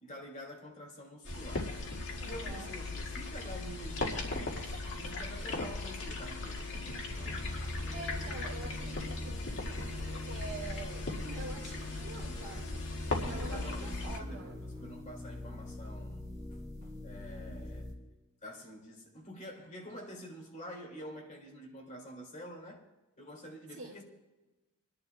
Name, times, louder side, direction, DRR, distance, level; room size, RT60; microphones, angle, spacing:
voice 1, 0.0-1.8 2.2-7.0 8.3-8.4 13.2-16.3 16.8-17.9 18.4-22.8 23.2-24.0, equal, 35° left, 2.2 m, -47 dB
sound 1, 1.3-14.2, left 2 dB, 55° left, 1.9 m, -38 dB
voice 2, 2.2-2.8 7.9-14.6 23.7-24.0, right 2 dB, 50° right, 2.3 m, -46 dB
sound 2, 7.1-17.9, left 1 dB, 20° right, 2.6 m, -43 dB
26.5 x 11.0 x 2.2 m
head